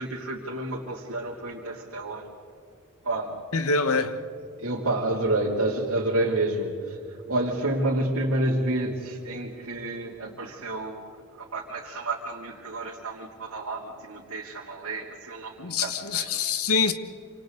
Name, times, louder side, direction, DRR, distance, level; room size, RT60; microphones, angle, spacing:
voice 1, 0.0-2.3 3.0-3.4 4.6-11.1 11.3-16.3, right 2 dB, 75° right, 3.0 m, -29 dB
voice 2, 3.5-4.2 15.6-16.9, left 4 dB, 90° left, 1.4 m, -25 dB
28.5 x 27.0 x 4.0 m
head